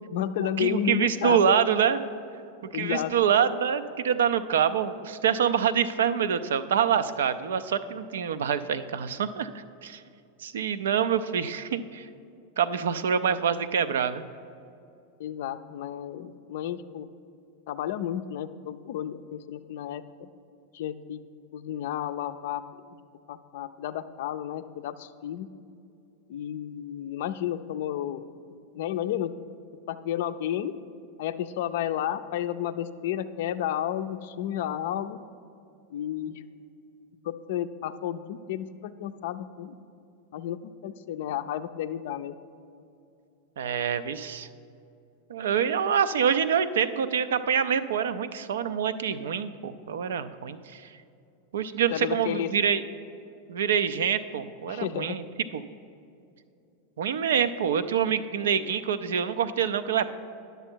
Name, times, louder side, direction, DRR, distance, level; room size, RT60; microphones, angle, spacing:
voice 1, 0.1-1.4 2.7-3.1 15.2-17.1 17.7-20.3 20.7-21.2 21.5-22.6 23.3-25.5 26.3-28.2 28.7-29.3 29.9-30.7 31.2-35.2 35.9-36.4 37.2-39.8 40.3-42.3 51.9-52.5 54.7-55.2, left 11 dB, 65° left, 11 dB, 0.4 m, -32 dB
voice 2, 0.6-2.0 2.7-10.0 10.4-12.1 12.6-14.2 43.6-44.5 45.3-50.9 51.5-52.8 53.5-55.2 55.5-55.6 57.0-60.1, right 8 dB, 75° right, 12 dB, 0.4 m, -26 dB
10.0 x 6.7 x 4.5 m, 2.7 s
hypercardioid pair, 95°, 0 cm